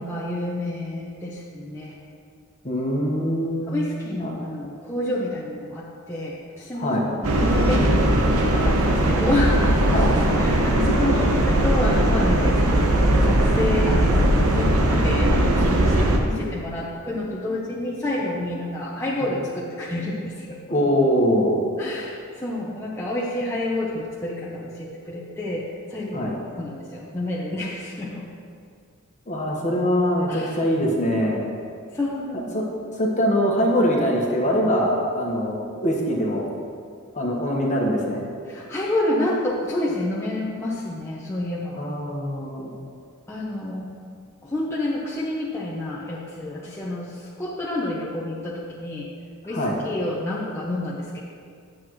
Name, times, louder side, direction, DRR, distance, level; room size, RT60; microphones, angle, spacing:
voice 1, 0.0-2.0 3.7-7.9 8.4-10.1 10.4-20.6 21.8-25.6 25.9-28.3 30.3-30.6 31.9-32.5 38.5-41.8 43.3-43.9 44.4-49.1 49.4-51.2, left 1 dB, 10° left, -7 dB, 0.8 m, -29 dB
voice 2, 2.6-3.7 4.2-4.3 6.7-7.1 9.9-10.2 19.2-19.3 20.7-21.6 26.1-26.3 29.3-31.5 32.5-32.7 33.0-36.4 37.1-38.2 41.8-42.9 49.5-49.8, equal, 35° left, -2 dB, 1.3 m, -23 dB
sound 1, 7.2-16.2, right 1 dB, 80° right, 0.9 m, -19 dB
11.0 x 7.8 x 3.1 m, 2.2 s
head